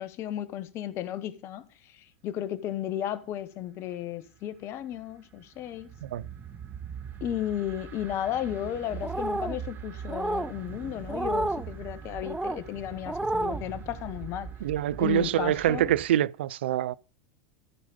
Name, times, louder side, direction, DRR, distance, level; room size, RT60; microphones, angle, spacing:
voice 1, 0.0-5.9 7.2-14.5 15.0-15.9, left 11 dB, 45° left, 1.2 m, -34 dB
sound 1, 4.3-16.1, right 7 dB, 35° right, 1.6 m, -42 dB
sound 2, 9.0-9.6 10.1-10.5 11.1-11.6 12.2-12.6 13.1-13.6, right 2 dB, 5° right, 0.8 m, -30 dB
voice 2, 14.6-17.0, right 12 dB, 75° right, 0.4 m, -25 dB
14.0 x 5.1 x 5.0 m
hypercardioid pair, 95°, 6 cm